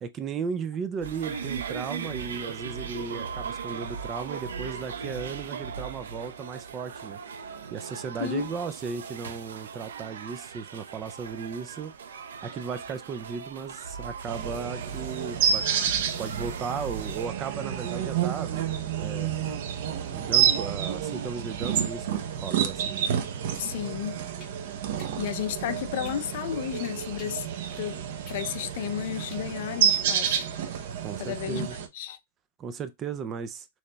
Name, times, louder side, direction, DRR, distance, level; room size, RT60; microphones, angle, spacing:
voice 1, 0.0-11.9 12.4-19.3 20.1-23.1 31.0-31.8 32.6-33.7, right 6 dB, 15° right, 0.3 m, -36 dB
sound 1, 1.0-17.3, right 6 dB, 90° right, 0.8 m, -38 dB
sound 2, 14.3-31.9, right 8 dB, 45° right, 0.7 m, -29 dB
voice 2, 23.5-24.2 25.2-27.4 27.8-28.0 28.3-30.4 31.2-31.7 31.9-32.2, left 10 dB, 45° left, 0.5 m, -32 dB
sound 3, 24.4-24.5 25.0-27.5 27.9-30.9, left 3 dB, 20° left, 1.8 m, -51 dB
6.5 x 3.1 x 2.2 m
hypercardioid pair, 170°, 0 cm